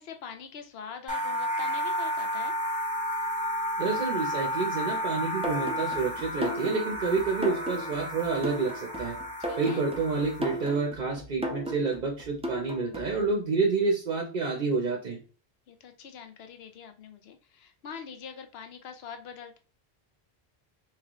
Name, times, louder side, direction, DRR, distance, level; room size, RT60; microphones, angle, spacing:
voice 1, 0.0-2.5 9.4-9.8 15.7-19.6, left 7 dB, 75° left, 7 dB, 0.8 m, -44 dB
sound 1, 1.1-10.8, equal, 10° left, 1.0 m, -32 dB
voice 2, 3.8-9.2 9.5-15.2, right 4 dB, 55° right, 1 dB, 0.7 m, -29 dB
sound 2, 5.4-13.2, equal, 10° right, 0.3 m, -36 dB
3.8 x 2.9 x 2.9 m, 0.38 s
omnidirectional pair, 1.1 m